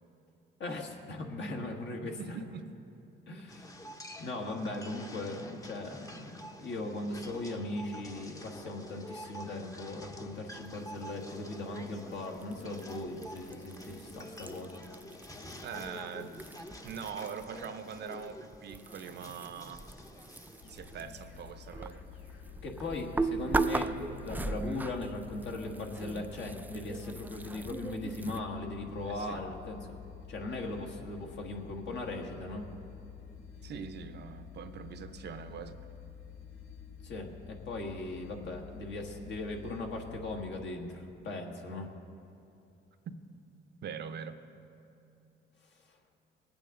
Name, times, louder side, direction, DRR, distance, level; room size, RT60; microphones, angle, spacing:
voice 1, 0.6-2.4 3.3-3.7 4.2-14.8 22.6-23.9 24.2-29.8 30.3-32.6 37.0-41.9, left 2 dB, 60° left, 2 dB, 1.6 m, -39 dB
voice 2, 2.0-2.7 15.6-16.6 16.8-19.8 20.7-22.0 29.0-29.4 33.6-35.9 43.8-44.4, right 6 dB, 55° right, 9 dB, 0.7 m, -42 dB
sound 1, 3.5-21.0, left 1 dB, 15° left, 0.8 m, -48 dB
sound 2, 12.4-17.7 17.9-28.4, right 3 dB, 10° right, 0.3 m, -38 dB
sound 3, 20.6-40.5, left 8 dB, 85° left, 1.3 m, -49 dB
19.5 x 8.8 x 3.8 m, 2.7 s
cardioid pair, 100°, 21 cm